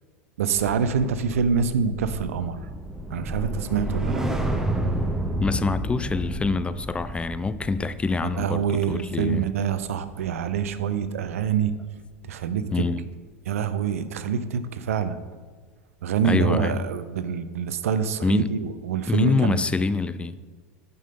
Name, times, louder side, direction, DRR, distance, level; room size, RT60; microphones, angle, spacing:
voice 1, 0.4-2.6 3.1-4.3 8.4-11.7 12.3-12.8 13.5-15.2 16.0-19.6, right 7 dB, 75° right, 13 dB, 0.5 m, -26 dB
sound 1, 1.2-11.0 11.3-11.6, right 1 dB, 5° right, 0.8 m, -31 dB
voice 2, 5.4-9.5 12.7-13.0 16.2-16.8 18.2-18.6 19.1-20.4, left 3 dB, 15° left, 13 dB, 0.3 m, -25 dB
10.5 x 5.3 x 3.8 m, 1.5 s
hypercardioid pair, 85°, 8 cm